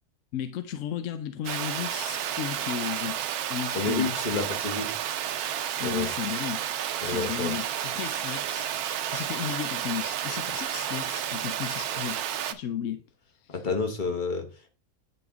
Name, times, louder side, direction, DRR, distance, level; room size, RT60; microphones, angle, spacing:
voice 1, 0.3-3.2 3.5-4.1 5.8-6.6 7.0-12.2 12.5-13.0 13.4-13.6, left 10 dB, 65° left, 0.9 m, -34 dB
Water, 1.4-12.5, right 10 dB, 90° right, 1.1 m, -31 dB
voice 2, 3.7-4.9 5.8-6.1 7.0-7.5 13.5-14.7, left 4 dB, 35° left, 1.1 m, -30 dB
9.5 x 3.5 x 3.5 m
omnidirectional pair, 1.5 m